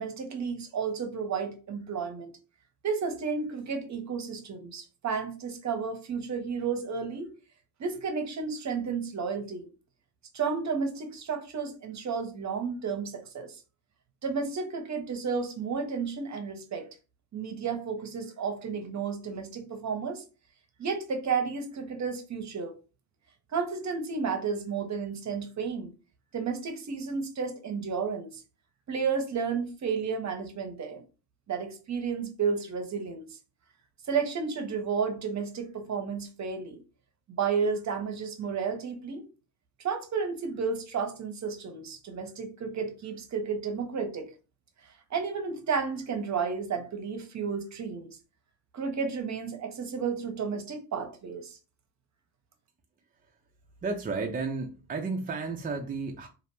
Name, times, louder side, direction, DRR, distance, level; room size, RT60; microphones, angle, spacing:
voice 1, 0.0-2.3 2.8-7.3 7.8-9.7 10.3-13.6 14.2-17.0 17.3-20.2 20.8-22.7 23.5-25.9 26.3-28.4 28.9-31.0 31.5-33.4 34.1-36.8 37.4-39.3 39.8-44.3 44.8-48.2 48.7-51.6, right 5 dB, 35° right, 0.7 m, -32 dB
voice 2, 53.8-56.3, right 4 dB, 20° right, 0.3 m, -32 dB
2.5 x 2.0 x 3.0 m
supercardioid pair, 65°, 47 cm